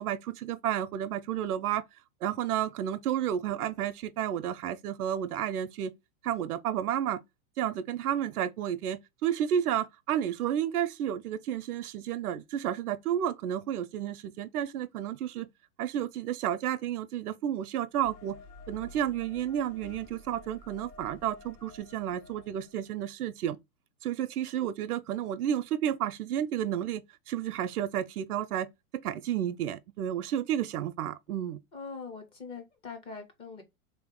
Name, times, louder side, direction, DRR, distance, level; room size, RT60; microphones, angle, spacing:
voice 1, 0.0-1.8 2.2-5.9 6.2-7.2 7.6-15.5 15.8-18.4 18.7-23.6 24.0-28.7 29.0-31.6, right 10 dB, 90° right, 0.6 m, -31 dB
sound 1, 18.0-23.0, left 2 dB, 35° left, 1.1 m, -51 dB
voice 2, 31.7-33.6, left 5 dB, 15° left, 0.4 m, -42 dB
3.5 x 2.8 x 3.6 m
hypercardioid pair, 135°, 44 cm